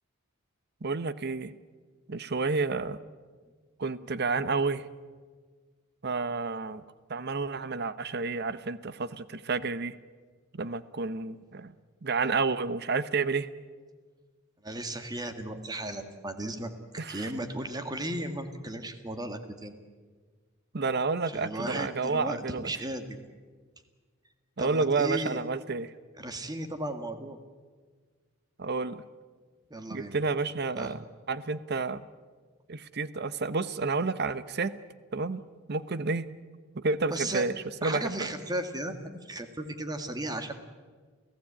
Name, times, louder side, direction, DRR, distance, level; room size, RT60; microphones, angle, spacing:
voice 1, 0.8-1.5 2.1-3.0 3.8-4.9 6.0-6.8 7.1-10.0 10.6-11.7 12.0-13.5 17.0-17.3 20.7-22.7 24.6-25.9 28.6-29.0 29.9-32.0 32.7-34.7 35.1-35.4 35.7-36.3 36.7-37.5 37.8-38.1, right 4 dB, 55° right, 15 dB, 0.9 m, -30 dB
voice 2, 14.6-19.7 21.3-23.2 24.6-25.4 26.2-27.4 29.7-30.2 30.8-30.9 37.1-37.4 37.8-40.5, right 1 dB, 20° right, 7 dB, 1.9 m, -35 dB
29.0 x 16.0 x 8.8 m, 1.5 s
head